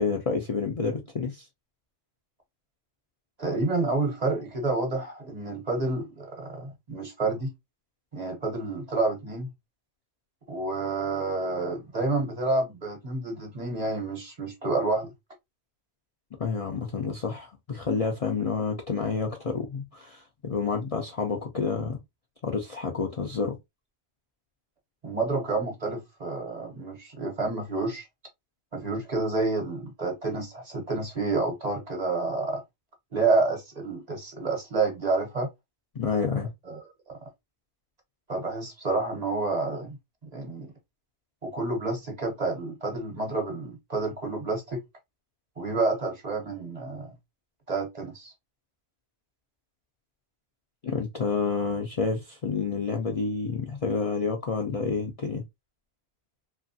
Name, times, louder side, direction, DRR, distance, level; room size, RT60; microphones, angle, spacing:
voice 1, 0.0-1.4 16.4-22.0 22.4-23.6 35.9-36.5 50.8-55.4, left 5 dB, 45° left, 0.5 m, -29 dB
voice 2, 3.4-7.5 8.1-9.5 10.5-15.1 25.0-28.1 28.7-32.6 33.1-35.5 36.7-36.8 38.3-40.0 40.3-40.7 41.4-44.8 45.6-47.1 47.7-48.3, right 3 dB, 40° right, 0.9 m, -29 dB
3.0 x 2.4 x 2.6 m
omnidirectional pair, 1.1 m